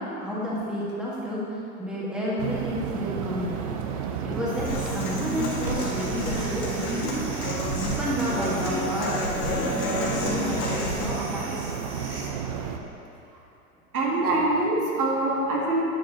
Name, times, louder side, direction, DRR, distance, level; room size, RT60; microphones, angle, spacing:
voice 1, 0.0-3.7 4.2-7.1 7.7-11.7, equal, ahead, -7 dB, 1.7 m, -31 dB
sound 1, 2.4-12.8, right 7 dB, 25° right, 0.3 m, -32 dB
sound 2, 4.5-12.3, right 1 dB, 90° right, 1.7 m, -40 dB
Human voice / Acoustic guitar, 4.6-11.1, left 2 dB, 45° left, 2.1 m, -31 dB
voice 2, 13.9-15.8, right 2 dB, 70° right, -3 dB, 2.0 m, -24 dB
11.0 x 8.4 x 3.0 m, 2.7 s
figure-of-eight pair, 100°, 46 cm